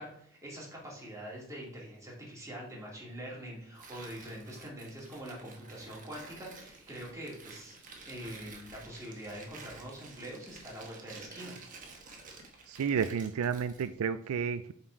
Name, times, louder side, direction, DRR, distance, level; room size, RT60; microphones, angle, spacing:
voice 1, 0.0-7.8 8.1-11.6, equal, 15° right, -4 dB, 2.4 m, -44 dB
Tearing, 3.7-13.9, right 3 dB, 40° right, 1.2 m, -51 dB
voice 2, 12.7-14.7, right 6 dB, 85° right, 13 dB, 0.4 m, -31 dB
7.5 x 4.1 x 4.5 m, 0.69 s
head